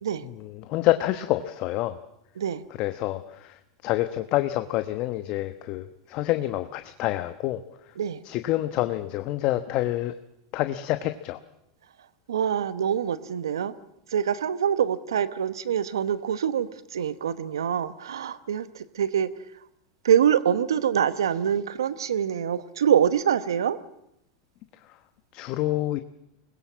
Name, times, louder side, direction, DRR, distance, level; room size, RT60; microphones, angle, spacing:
voice 1, 0.2-2.0 2.8-7.6 8.2-10.1 10.5-11.4 25.3-26.0, left 15 dB, 50° left, 9 dB, 1.1 m, -27 dB
voice 2, 12.3-13.7 14.1-19.3 20.0-23.8, right 8 dB, 85° right, 14 dB, 1.0 m, -25 dB
23.5 x 20.5 x 7.4 m, 0.81 s
hypercardioid pair, 105°, 2 cm